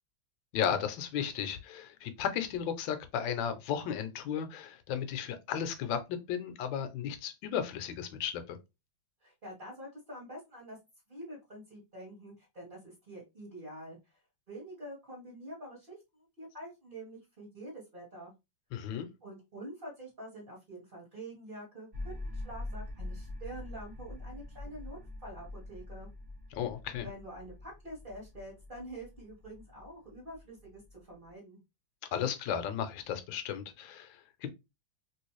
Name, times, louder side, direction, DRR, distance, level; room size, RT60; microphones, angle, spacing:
voice 1, 0.5-8.6 18.7-19.1 26.5-27.1 32.1-34.5, left 8 dB, 75° left, 1.3 m, -34 dB
voice 2, 9.2-10.8 11.1-14.2 14.5-18.3 19.2-26.1 27.0-31.6, right 1 dB, 30° right, 1.1 m, -47 dB
sound 1, 21.9-31.3, left 2 dB, 55° right, 0.5 m, -44 dB
3.1 x 3.0 x 3.1 m
omnidirectional pair, 2.2 m